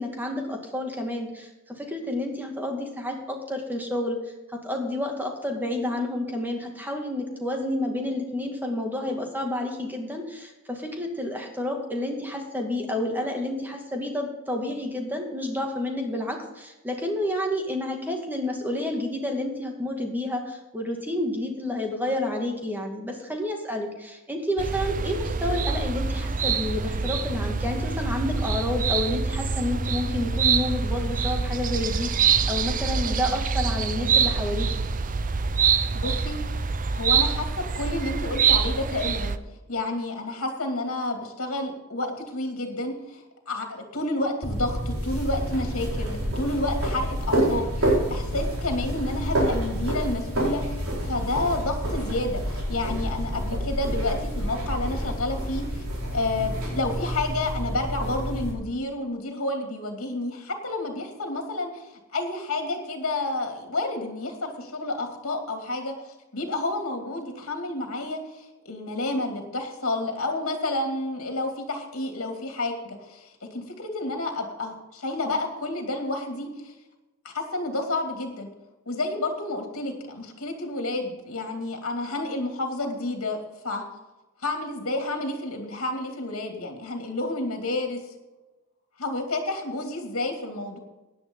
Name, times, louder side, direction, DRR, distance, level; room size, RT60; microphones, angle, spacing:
voice 1, 0.0-4.2 4.5-34.7, left 1 dB, 10° right, 2 dB, 2.2 m, -30 dB
sound 1, 24.6-39.4, right 5 dB, 40° right, 0.6 m, -25 dB
voice 2, 35.9-36.4 36.9-39.3 39.7-50.7 51.0-55.8 56.1-65.9 66.3-76.7 77.2-78.5 78.9-83.4 83.6-83.8 84.4-88.0 89.0-90.8, left 2 dB, 65° left, 3 dB, 2.5 m, -30 dB
sound 2, 44.4-58.5, equal, 70° right, 4.6 m, -28 dB
16.0 x 10.5 x 3.8 m, 1.1 s
head